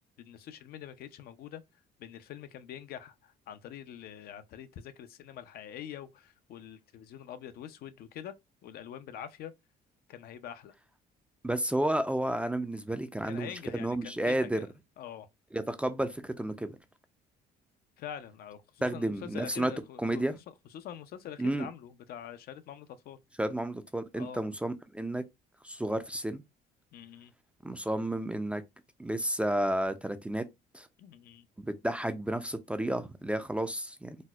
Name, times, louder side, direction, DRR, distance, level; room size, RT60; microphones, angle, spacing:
voice 1, 0.2-1.6 2.0-8.3 8.6-9.5 10.1-10.7 13.2-14.7 15.0-15.3 18.0-23.2 24.2-24.4 26.9-27.3 31.0-31.5, left 10 dB, 65° left, 0.4 m, -45 dB
voice 2, 11.4-14.6 15.5-16.7 18.8-19.7 20.0-20.3 21.4-21.7 23.4-25.2 25.6-26.4 27.6-28.6 29.0-30.4 30.7-30.9 31.6-34.2, right 1 dB, 5° right, 0.3 m, -31 dB
4.1 x 2.0 x 2.2 m
cardioid pair, 110°, 17 cm